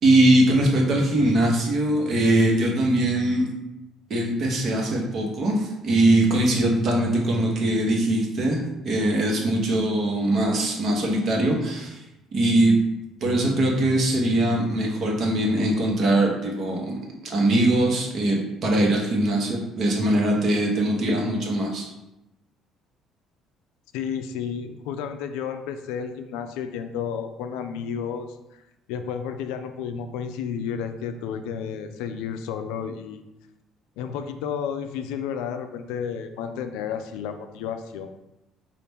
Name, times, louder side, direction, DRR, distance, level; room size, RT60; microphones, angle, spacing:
voice 1, 0.0-3.5 4.1-12.0 12.3-12.8 13.2-21.9, right 1 dB, 60° right, 0 dB, 1.0 m, -21 dB
voice 2, 23.9-28.6 28.9-33.2 34.0-38.2, left 7 dB, 80° left, 8 dB, 0.3 m, -32 dB
4.1 x 2.5 x 3.4 m, 0.92 s
supercardioid pair, 70°, 0 cm